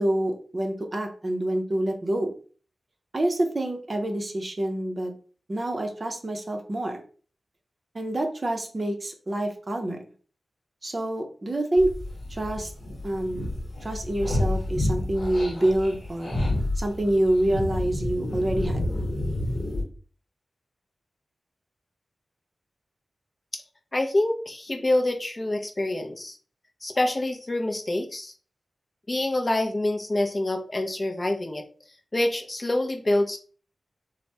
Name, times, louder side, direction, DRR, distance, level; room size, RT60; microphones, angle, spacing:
voice 1, 0.0-2.3 3.1-5.1 5.5-7.0 7.9-10.0 10.8-11.9 12.3-12.7 13.0-13.4 13.8-16.3 16.8-18.9, right 1 dB, 40° right, 3 dB, 0.5 m, -27 dB
sound 1, 11.8-19.8, left 1 dB, 60° left, 1.0 m, -29 dB
voice 2, 23.9-26.4 26.8-28.3 29.1-31.6 32.1-33.4, left 1 dB, 30° left, 3 dB, 0.4 m, -26 dB
3.3 x 2.0 x 2.7 m, 0.41 s
wide cardioid pair, 85°, 0 cm